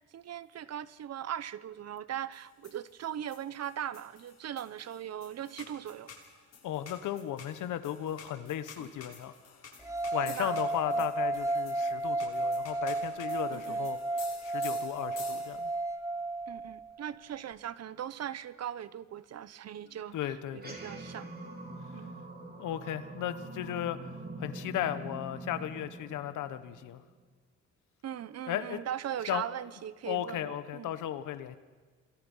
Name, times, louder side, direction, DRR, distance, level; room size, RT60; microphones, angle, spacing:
voice 1, 0.1-6.1 8.8-8.9 10.3-10.6 13.5-13.8 16.5-21.3 21.9-22.1 28.0-30.9, right 10 dB, 55° right, 17 dB, 0.9 m, -39 dB
sound 1, 2.3-15.8, left 6 dB, 55° left, 7.1 m, -51 dB
voice 2, 6.6-9.3 10.1-14.0 14.4-15.7 20.1-20.8 22.6-24.0 24.4-27.0 28.5-28.8 29.3-29.4 30.1-31.6, left 11 dB, 85° left, 12 dB, 1.4 m, -35 dB
sound 2, 9.8-16.9, right 2 dB, 10° right, 0.8 m, -33 dB
sound 3, 20.5-27.2, right 2 dB, 30° right, 4.2 m, -44 dB
27.5 x 21.0 x 5.6 m, 1.4 s
cardioid pair, 90°, 30 cm